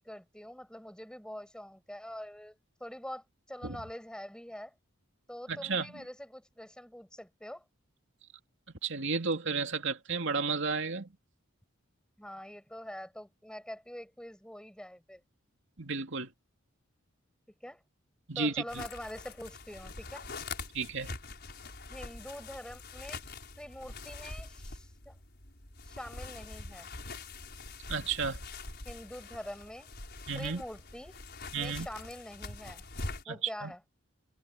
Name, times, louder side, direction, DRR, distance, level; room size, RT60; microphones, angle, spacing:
voice 1, 0.0-4.7 5.3-7.6 12.2-15.2 17.6-17.8 18.4-20.3 21.9-23.2 23.6-25.2 25.9-26.9 28.8-29.9 30.3-31.2 31.5-32.8 33.3-33.8, equal, 5° left, 7.6 m, -45 dB
voice 2, 5.5-5.9 8.8-11.1 15.8-16.3 18.3-18.8 20.7-21.1 27.9-28.4 30.3-30.6 31.5-31.9 33.3-33.7, right 4 dB, 65° right, 2.8 m, -32 dB
sound 1, 18.7-33.2, left 3 dB, 55° left, 5.4 m, -44 dB
head